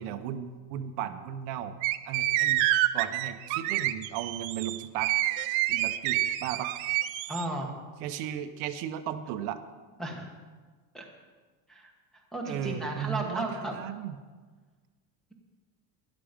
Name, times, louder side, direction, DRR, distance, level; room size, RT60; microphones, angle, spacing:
voice 1, 0.0-1.8 2.0-5.1 5.7-6.7 8.0-9.6 12.4-14.2, right 10 dB, 90° right, 8 dB, 1.0 m, -35 dB
sound 1, 1.8-7.4, right 15 dB, 70° right, 0.6 m, -28 dB
voice 2, 7.3-7.7 10.0-10.3 10.9-11.0 11.7-11.9 12.3-13.7, right 1 dB, ahead, -2 dB, 1.2 m, -34 dB
12.5 x 11.0 x 5.1 m, 1.4 s
cardioid pair, 180°, 48 cm